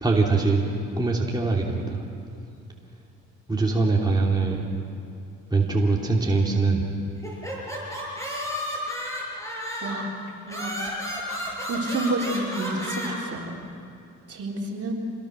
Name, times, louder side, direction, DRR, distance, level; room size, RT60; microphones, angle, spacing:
voice 1, 0.0-2.0 3.5-4.7 5.5-6.9, right 3 dB, 15° right, -2 dB, 3.0 m, -23 dB
sound 1, 7.2-10.1 10.5-13.1, equal, 10° left, 7.1 m, -32 dB
voice 2, 9.8-10.1 10.5-10.7 11.7-13.6 14.3-14.9, right 2 dB, 50° right, -1 dB, 4.2 m, -29 dB
28.0 x 21.5 x 6.5 m, 2.5 s
cardioid pair, 90°, 30 cm